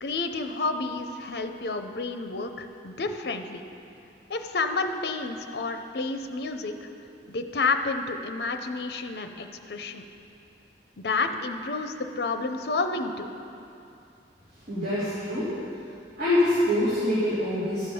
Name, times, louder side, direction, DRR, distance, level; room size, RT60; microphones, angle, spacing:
voice 1, 0.0-3.6 4.3-6.7 7.3-10.0 11.0-13.3, left 3 dB, 65° left, 7 dB, 0.6 m, -30 dB
voice 2, 14.7-15.5 16.2-17.9, left 1 dB, 60° right, -14 dB, 2.6 m, -25 dB
13.5 x 5.1 x 5.4 m, 2.7 s
head